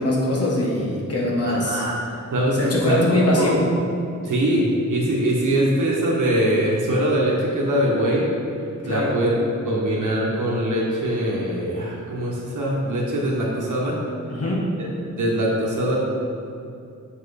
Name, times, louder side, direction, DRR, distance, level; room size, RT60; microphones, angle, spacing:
voice 1, 0.0-1.8 2.5-3.6 8.8-9.2 14.3-14.7, left 1 dB, 50° left, -3 dB, 1.4 m, -22 dB
voice 2, 1.5-1.9 2.3-3.0 3.4-3.5 4.2-8.3 8.8-9.3 9.6-14.0 15.2-16.0, right 1 dB, 90° right, -4 dB, 1.2 m, -22 dB
7.4 x 6.0 x 4.2 m, 2.5 s
wide cardioid pair, 180°, 30 cm